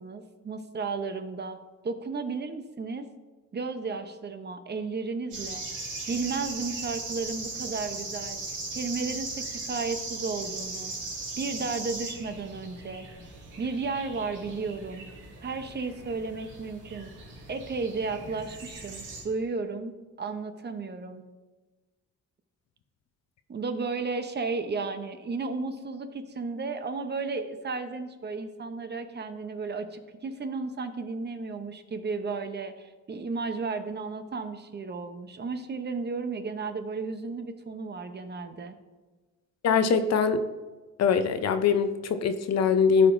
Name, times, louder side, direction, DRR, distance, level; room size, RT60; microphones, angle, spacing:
voice 1, 0.0-1.6 1.8-3.1 3.5-5.7 6.1-10.9 11.4-13.1 13.6-15.1 15.4-17.1 17.5-21.2 23.5-38.8, right 4 dB, 35° right, 8 dB, 0.8 m, -33 dB
sound 1, 5.3-19.2, right 3 dB, 85° right, 2.1 m, -38 dB
voice 2, 39.6-40.4 41.0-43.1, left 6 dB, 60° left, 9 dB, 0.7 m, -22 dB
13.5 x 4.9 x 2.6 m, 1.2 s
cardioid pair, 90°, 30 cm